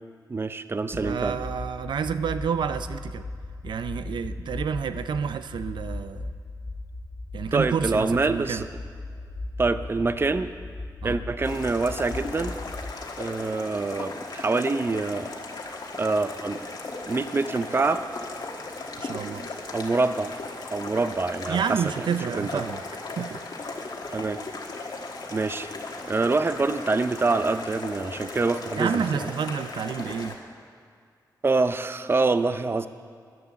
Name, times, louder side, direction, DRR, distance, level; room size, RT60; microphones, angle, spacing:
voice 1, 0.3-1.4 7.5-8.7 9.6-10.5 11.0-12.6 13.2-15.3 16.0-16.6 17.1-18.0 19.7-20.3 20.7-22.1 22.3-22.6 24.1-24.4 25.3-25.7 26.0-29.3 31.4-32.9, right 3 dB, 30° right, 11 dB, 0.5 m, -25 dB
sound 1, 0.9-12.9, left 2 dB, 35° left, 0.9 m, -37 dB
voice 2, 0.9-3.3 3.6-6.3 7.3-8.6 11.0-11.2 19.0-19.5 21.5-22.8 23.2-23.5 28.8-30.4, right 7 dB, 90° right, 11 dB, 0.4 m, -29 dB
sound 2, 11.4-30.4, left 3 dB, 65° left, 1.5 m, -37 dB
11.0 x 10.5 x 7.1 m, 2.2 s
wide cardioid pair, 95°, 8 cm